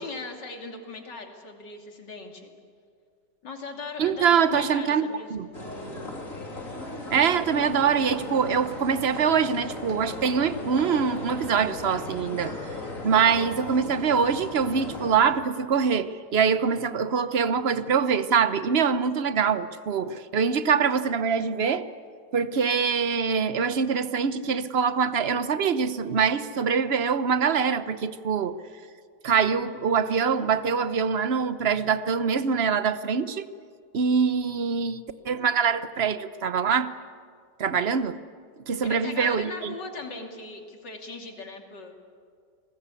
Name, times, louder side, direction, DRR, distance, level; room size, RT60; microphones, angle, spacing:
voice 1, 0.0-2.5 3.4-5.3 38.8-41.9, left 3 dB, 80° left, 3 dB, 3.3 m, -39 dB
voice 2, 4.0-5.5 7.1-12.5 13.0-21.9 22.3-28.6 29.2-33.5 33.9-36.9 37.6-38.2 38.7-39.7, right 6 dB, 45° right, 13 dB, 0.9 m, -24 dB
sound 1, 5.5-15.2, left 2 dB, 50° left, 3.7 m, -37 dB
29.5 x 20.0 x 8.4 m, 2.1 s
omnidirectional pair, 1.9 m